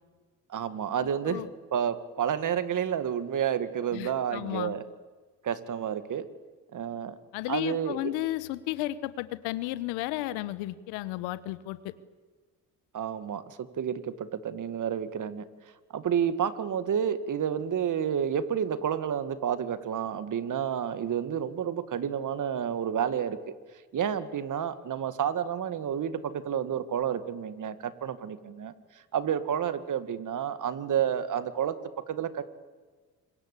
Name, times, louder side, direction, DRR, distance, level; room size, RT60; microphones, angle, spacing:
voice 1, 0.5-1.4 1.7-4.8 5.4-6.2 6.7-7.2 7.5-8.1 12.9-15.4 15.9-23.5 23.9-28.7 29.1-31.7 32.1-32.4, right 8 dB, 50° right, 12 dB, 2.1 m, -30 dB
voice 2, 1.0-1.5 3.9-4.7 7.3-11.9, left 16 dB, 90° left, 16 dB, 1.3 m, -33 dB
26.0 x 22.5 x 8.5 m, 1.4 s
supercardioid pair, 75°, 38 cm